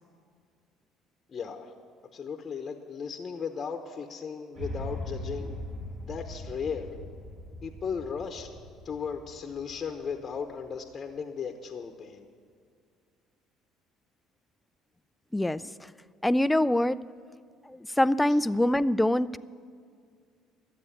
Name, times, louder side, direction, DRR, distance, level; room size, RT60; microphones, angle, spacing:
voice 1, 1.3-1.7 2.1-5.6 6.0-6.9 7.6-8.5 8.8-12.3, left 6 dB, 35° left, 5 dB, 0.9 m, -36 dB
sound 1, 4.6-10.7, left 1 dB, 50° right, 3.7 m, -40 dB
voice 2, 15.3-15.9 16.2-17.0 17.7-19.4, left 1 dB, 10° left, 16 dB, 0.3 m, -25 dB
12.0 x 8.3 x 8.3 m, 2.1 s
supercardioid pair, 90°, 0 cm